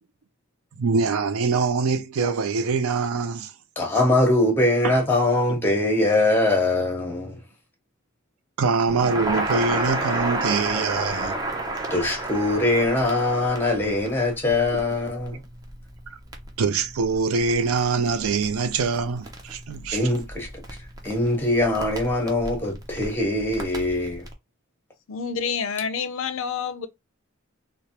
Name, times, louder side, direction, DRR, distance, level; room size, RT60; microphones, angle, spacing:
voice 1, 0.7-3.5 4.0-4.1 4.8-4.9 8.6-11.4 14.7-14.8 16.6-20.1, right 4 dB, 80° right, 0.4 m, -24 dB
voice 2, 3.8-7.4 11.9-15.4 19.9-20.5 21.0-24.3, left 2 dB, 10° left, 0.9 m, -22 dB
Crackle, 8.9-24.3, right 2 dB, 15° right, 0.5 m, -32 dB
voice 3, 25.1-26.9, left 6 dB, 65° left, 0.4 m, -28 dB
3.2 x 2.1 x 2.8 m
head